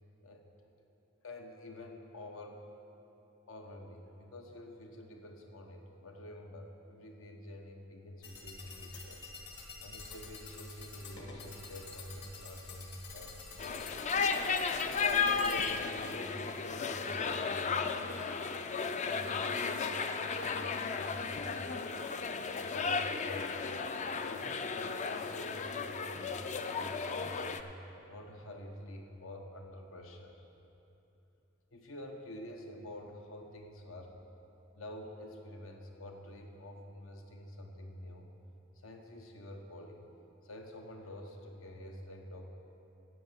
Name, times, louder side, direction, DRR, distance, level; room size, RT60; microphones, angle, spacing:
voice 1, 1.2-2.6 3.5-9.2 9.8-14.0 14.7-18.5 19.0-22.1 22.6-23.8 24.2-26.4 26.6-27.7 28.1-30.4 31.7-34.2 34.7-38.3 38.7-40.1 40.4-42.6, left 1 dB, 80° left, 3 dB, 1.1 m, -48 dB
sound 1, 8.2-15.7, left 4 dB, 60° left, 1.6 m, -48 dB
sound 2, 13.6-27.6, left 5 dB, 35° left, 0.4 m, -34 dB
10.0 x 8.0 x 7.0 m, 3.0 s
head